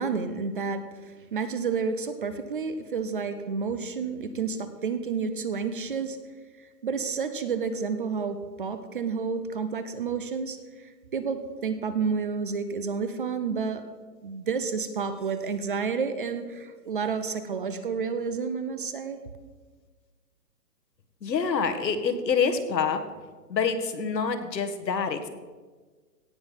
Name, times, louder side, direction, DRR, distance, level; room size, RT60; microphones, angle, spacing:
voice 1, 0.0-6.2 6.6-13.8 14.2-19.2, right 5 dB, 35° right, 11 dB, 0.6 m, -30 dB
voice 2, 21.2-23.0 23.5-25.3, left 6 dB, 80° left, 7 dB, 1.7 m, -26 dB
17.0 x 7.1 x 5.8 m, 1.4 s
hypercardioid pair, 160°, 50 cm